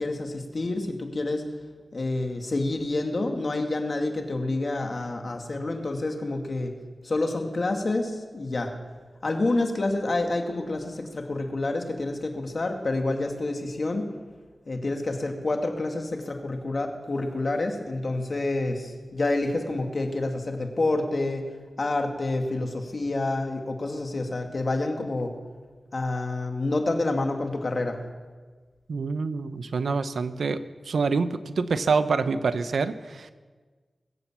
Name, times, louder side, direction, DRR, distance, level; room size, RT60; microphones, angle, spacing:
voice 1, 0.0-1.4 1.9-6.7 7.0-8.7 9.2-14.1 14.7-21.4 21.8-25.3 25.9-28.0, left 2 dB, 55° left, 4 dB, 2.3 m, -28 dB
voice 2, 28.9-33.3, right 4 dB, 85° right, 12 dB, 0.8 m, -26 dB
21.5 x 8.1 x 7.4 m, 1.4 s
cardioid pair, 45°, 0 cm